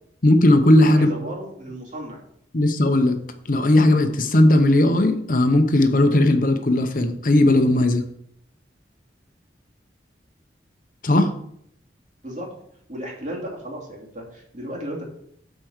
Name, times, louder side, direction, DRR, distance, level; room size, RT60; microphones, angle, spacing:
voice 1, 0.2-1.1 2.5-3.2 3.5-8.0 11.0-11.3, left 1 dB, 50° left, 7 dB, 0.8 m, -17 dB
voice 2, 0.9-2.2 12.2-12.5 12.9-15.0, right 1 dB, 40° right, -2 dB, 2.7 m, -34 dB
8.3 x 4.5 x 6.4 m, 0.70 s
head